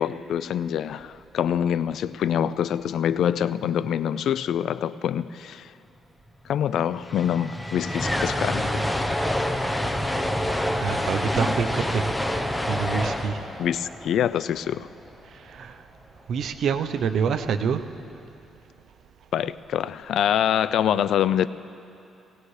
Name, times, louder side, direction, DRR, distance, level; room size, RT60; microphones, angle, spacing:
voice 1, 0.0-5.7 6.5-8.9 13.6-14.9 19.3-21.5, left 9 dB, 70° left, 0.3 m, -25 dB
sound 1, 6.8-15.0, left 1 dB, 5° left, 0.8 m, -27 dB
voice 2, 10.4-13.5 15.3-15.8 16.3-17.8, right 6 dB, 65° right, 0.6 m, -27 dB
19.0 x 18.0 x 3.2 m
cardioid pair, 90°, 0 cm